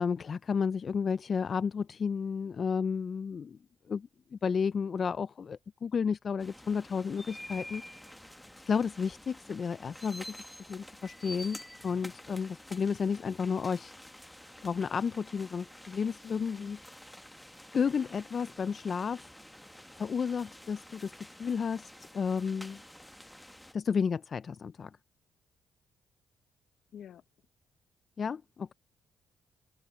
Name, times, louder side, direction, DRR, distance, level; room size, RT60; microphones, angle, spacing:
voice 1, 0.0-3.6 3.9-7.8 8.7-10.4 10.7-13.9 14.6-16.8 17.7-19.2 20.0-22.8 23.7-24.9 28.2-28.7, left 6 dB, 45° left, 0.3 m, -32 dB
sound 1, 6.4-23.7, left 1 dB, 5° left, 1.1 m, -49 dB
voice 2, 16.2-16.7 26.9-27.2, left 9 dB, 70° left, 0.9 m, -50 dB
cardioid pair, 90°, 0 cm